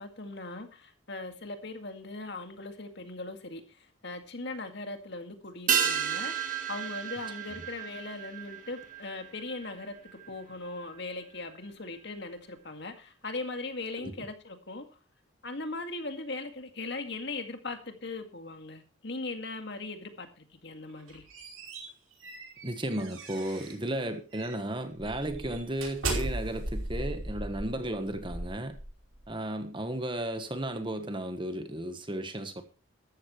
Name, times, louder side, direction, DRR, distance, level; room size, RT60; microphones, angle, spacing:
voice 1, 0.0-14.9 15.4-21.2, left 2 dB, 55° left, 2.1 m, -39 dB
sound 1, 5.7-10.4 10.7-10.8, right 7 dB, 40° right, 1.9 m, -32 dB
sound 2, 20.9-23.8 24.3-24.6 25.0-29.2, right 2 dB, 85° right, 5.2 m, -37 dB
voice 2, 22.6-28.8 29.3-32.6, right 1 dB, 25° right, 1.3 m, -34 dB
13.5 x 12.5 x 3.2 m
head